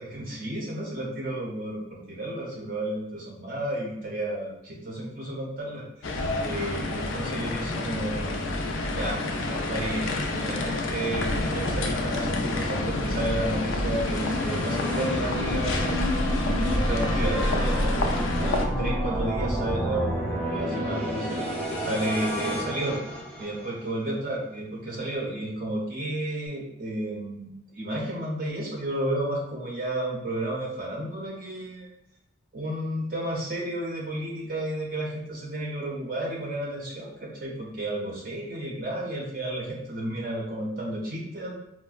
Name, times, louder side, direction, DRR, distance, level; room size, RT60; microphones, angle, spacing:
voice 1, 0.2-6.1 6.4-8.3 8.9-9.2 9.5-15.9 16.5-21.4 21.8-23.0 23.4-31.9 32.5-41.6, right 1 dB, 45° right, -3 dB, 0.5 m, -32 dB
sound 1, 6.0-18.7, left 2 dB, 80° left, 0.4 m, -29 dB
sound 2, 13.7-23.9, equal, 5° left, 0.5 m, -29 dB
4.6 x 2.0 x 2.3 m, 0.87 s
head